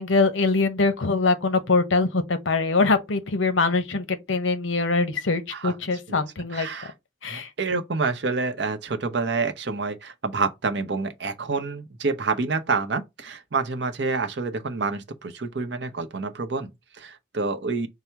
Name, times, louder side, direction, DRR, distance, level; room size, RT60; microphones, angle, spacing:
voice 1, 0.0-6.7 7.2-7.5, left 3 dB, 80° left, 0.9 m, -23 dB
voice 2, 6.5-6.9 7.3-17.9, right 4 dB, 65° right, 0.7 m, -28 dB
5.6 x 2.0 x 4.5 m
head